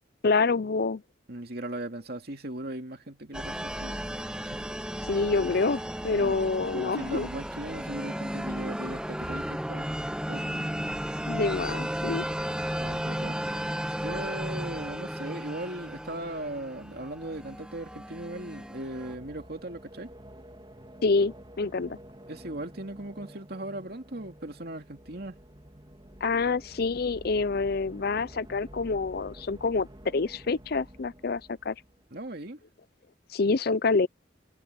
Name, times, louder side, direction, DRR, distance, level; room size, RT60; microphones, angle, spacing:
voice 1, 0.2-1.0 5.0-7.3 11.3-12.3 21.0-22.0 26.2-31.7 33.3-34.1, left 4 dB, 55° left, 0.6 m, -27 dB
voice 2, 1.3-4.0 4.4-4.6 6.1-6.4 6.7-9.9 10.3-10.5 12.8-13.4 14.0-20.1 22.3-25.3 32.1-32.6, right 1 dB, 55° right, 2.5 m, -38 dB
sound 1, 3.3-19.2, equal, 5° right, 1.4 m, -34 dB
sound 2, 15.4-32.4, equal, 25° right, 3.3 m, -50 dB
head